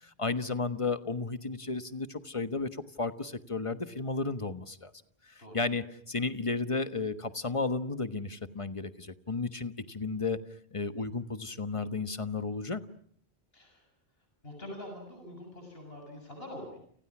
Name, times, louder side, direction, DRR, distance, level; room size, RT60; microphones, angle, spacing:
voice 1, 0.0-4.9 5.5-10.4 10.7-12.8, left 3 dB, 30° left, 11 dB, 1.3 m, -33 dB
voice 2, 14.4-16.8, left 1 dB, 65° left, 4 dB, 7.5 m, -44 dB
29.5 x 29.5 x 6.1 m, 0.62 s
omnidirectional pair, 1.1 m